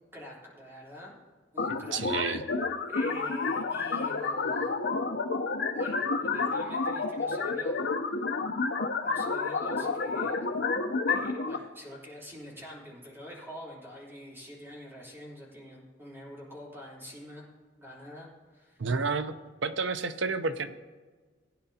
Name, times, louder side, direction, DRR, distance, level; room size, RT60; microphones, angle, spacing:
voice 1, 0.1-1.1 1.5-2.2 2.8-4.8 5.7-7.8 9.0-10.6 11.1-17.4 17.8-18.9, equal, 15° right, -5 dB, 3.4 m, -46 dB
sound 1, 1.6-11.6, left 4 dB, 60° left, 0.7 m, -30 dB
voice 2, 1.7-2.4 18.8-19.3 19.6-20.7, right 4 dB, 80° right, 10 dB, 0.7 m, -30 dB
17.0 x 10.0 x 2.8 m, 1.4 s
head